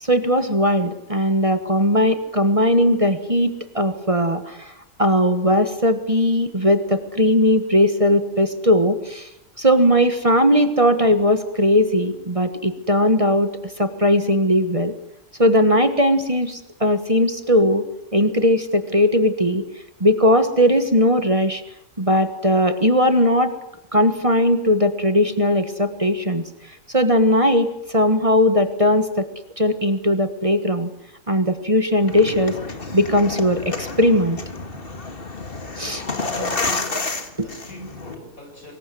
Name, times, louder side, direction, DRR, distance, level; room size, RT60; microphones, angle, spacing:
voice 1, 0.0-4.7 5.0-9.3 9.6-14.9 15.4-17.9 18.1-19.6 20.0-21.6 22.0-23.5 23.9-26.4 26.9-29.3 29.6-30.9 31.3-32.6 32.9-34.4 35.8-36.0, equal, 25° right, 9 dB, 1.5 m, -18 dB
sound 1, 32.0-38.2, left 3 dB, 40° left, 2.2 m, -30 dB
voice 2, 36.0-38.7, left 1 dB, 85° left, 2 dB, 8.5 m, -39 dB
24.5 x 21.0 x 7.9 m, 0.87 s
omnidirectional pair, 1.4 m